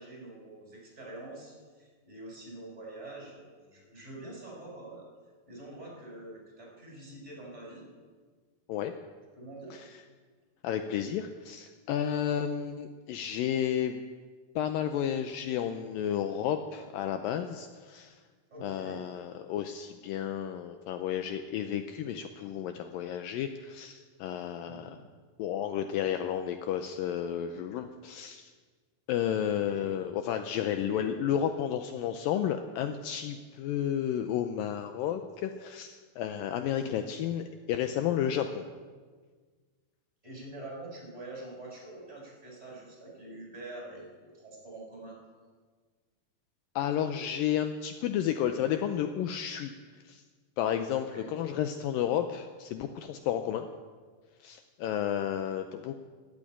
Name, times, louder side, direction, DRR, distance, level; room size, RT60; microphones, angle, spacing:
voice 1, 0.0-5.0 5.5-7.9 9.3-9.8 18.5-19.0 24.6-25.0 29.3-30.0 30.9-31.1 36.7-37.1 40.2-45.2 50.9-51.3, right 2 dB, 15° right, -2 dB, 5.6 m, -45 dB
voice 2, 10.6-14.0 14.6-18.2 18.6-25.0 25.4-28.5 29.1-38.6 46.8-49.7 50.1-50.2 50.6-53.7 54.4-56.0, left 9 dB, 80° left, 7 dB, 2.2 m, -32 dB
12.5 x 11.5 x 8.9 m, 1.5 s
omnidirectional pair, 4.4 m